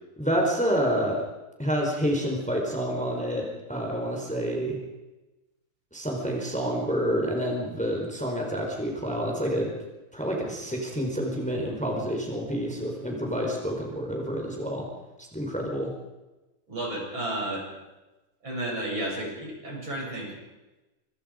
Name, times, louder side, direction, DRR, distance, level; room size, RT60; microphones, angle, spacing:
voice 1, 0.2-1.2 1.6-4.8 5.9-9.7 10.1-14.9 15.3-15.9, equal, 5° left, 0 dB, 4.5 m, -28 dB
voice 2, 16.7-17.7 18.4-20.3, right 1 dB, 60° right, -2 dB, 8.8 m, -32 dB
25.5 x 25.5 x 5.2 m, 1.1 s
omnidirectional pair, 2.4 m